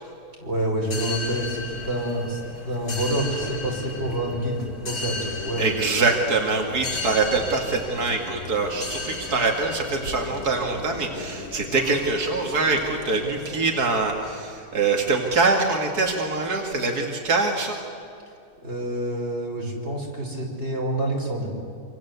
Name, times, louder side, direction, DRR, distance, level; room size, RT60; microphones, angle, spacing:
voice 1, 0.4-2.4 2.7-5.7 18.6-21.5, right 1 dB, 45° right, -1 dB, 5.9 m, -27 dB
sound 1, 0.8-14.3, left 3 dB, 85° left, 3.1 m, -35 dB
voice 2, 5.6-17.8, right 3 dB, 90° right, 1 dB, 2.6 m, -24 dB
26.5 x 26.5 x 8.2 m, 2.5 s
omnidirectional pair, 1.6 m